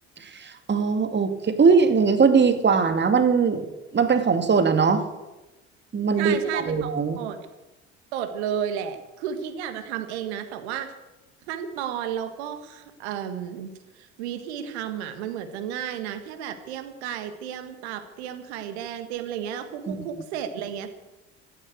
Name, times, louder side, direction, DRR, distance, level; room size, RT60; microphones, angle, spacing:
voice 1, 0.4-3.7 3.9-5.0 5.9-7.2 19.9-20.1, right 5 dB, 30° right, 7 dB, 2.2 m, -20 dB
voice 2, 6.2-6.9 7.2-7.4 8.1-10.9 11.5-20.9, right 9 dB, 70° right, 9 dB, 1.7 m, -32 dB
14.0 x 11.0 x 8.2 m, 1.0 s
figure-of-eight pair, 60°, 34 cm